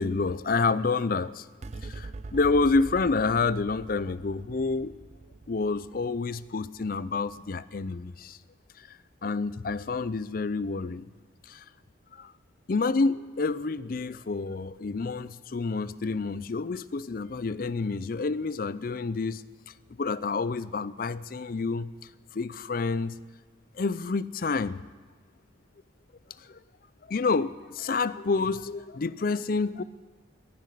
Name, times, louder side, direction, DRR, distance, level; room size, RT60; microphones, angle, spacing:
voice 1, 0.0-1.5 1.8-4.9 5.5-8.4 8.8-11.1 11.4-11.6 12.1-12.3 12.7-19.4 20.0-21.9 22.3-23.2 23.8-24.8 26.4-26.6 27.1-29.8, left 4 dB, 45° left, 17 dB, 0.5 m, -28 dB
sound 1, 1.6-8.3, right 3 dB, 35° right, 0.5 m, -44 dB
19.0 x 10.5 x 6.7 m, 1.5 s
head